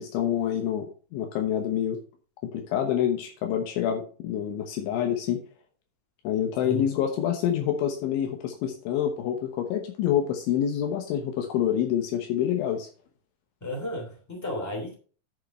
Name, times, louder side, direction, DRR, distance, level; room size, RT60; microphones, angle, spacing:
voice 1, 0.0-2.0 2.4-5.4 6.2-12.9, left 10 dB, 80° left, 3.5 m, -27 dB
voice 2, 13.6-14.9, left 1 dB, 5° left, 1.7 m, -33 dB
10.5 x 5.5 x 4.3 m
omnidirectional pair, 5.5 m